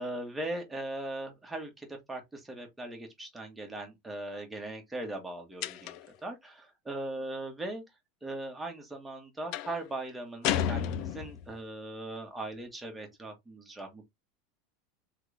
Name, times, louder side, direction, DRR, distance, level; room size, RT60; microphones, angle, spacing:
voice 1, 0.0-7.8 8.2-14.1, right 1 dB, 5° right, 1.6 m, -39 dB
Metallic Door (Open Close), 5.6-6.2 9.5-9.8 10.4-11.5, left 10 dB, 50° left, 0.5 m, -32 dB
3.8 x 3.5 x 3.4 m
supercardioid pair, 140°, 0 cm